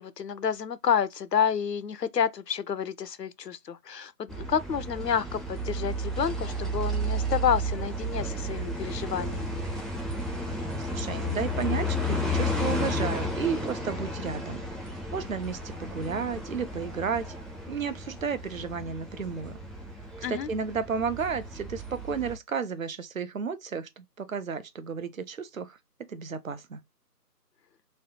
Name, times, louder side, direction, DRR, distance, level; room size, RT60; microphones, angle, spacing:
voice 1, 0.0-9.5 20.2-20.5, left 7 dB, 80° left, 0.6 m, -29 dB
sound 1, 4.3-22.4, equal, ahead, 0.4 m, -33 dB
voice 2, 10.9-14.6 15.1-17.3 17.7-19.6 20.3-25.8 26.1-26.8, right 6 dB, 55° right, 0.5 m, -33 dB
3.2 x 2.3 x 2.7 m
figure-of-eight pair, 160°, 49 cm